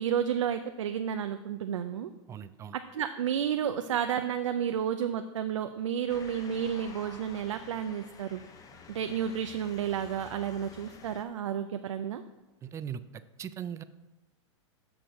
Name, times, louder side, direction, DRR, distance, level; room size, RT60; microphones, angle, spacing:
voice 1, 0.0-2.1 2.7-8.4 8.9-12.2, right 9 dB, 90° right, 8 dB, 0.5 m, -31 dB
voice 2, 2.3-2.7 12.6-13.0 13.4-13.8, right 8 dB, 20° right, 13 dB, 0.4 m, -38 dB
Motor vehicle (road) / Siren, 6.1-11.2, left 5 dB, 25° left, 0.8 m, -50 dB
6.8 x 6.0 x 5.2 m, 1.1 s
hypercardioid pair, 125°, 15 cm